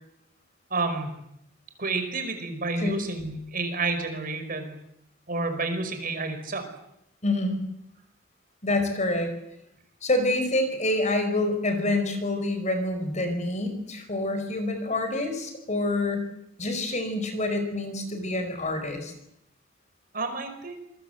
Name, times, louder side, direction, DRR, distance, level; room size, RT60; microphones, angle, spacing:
voice 1, 0.7-1.2 1.8-4.8 5.3-6.7 20.1-20.8, right 3 dB, 45° right, 7 dB, 5.1 m, -30 dB
voice 2, 7.2-7.6 8.6-9.3 10.0-16.3 16.6-19.1, left 2 dB, 35° left, 8 dB, 5.1 m, -27 dB
27.0 x 22.0 x 8.1 m, 0.81 s
head